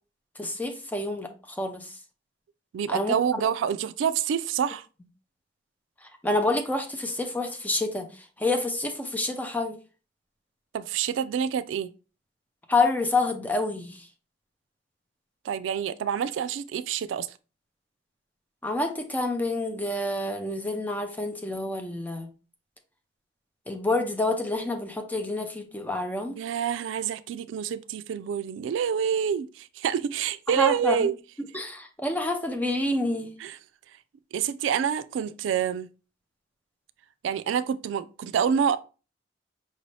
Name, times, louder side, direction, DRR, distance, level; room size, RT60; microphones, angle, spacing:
voice 1, 0.4-1.9 2.9-3.2 6.2-8.1 8.4-9.8 12.7-14.0 18.6-22.3 23.7-26.4 30.5-31.1 31.5-33.3, left 2 dB, 10° left, 0.5 m, -28 dB
voice 2, 2.7-4.9 10.7-11.9 15.4-17.3 26.4-31.2 33.4-33.6 34.3-35.9 37.2-38.8, right 8 dB, 90° right, 0.3 m, -27 dB
5.2 x 2.7 x 3.2 m
head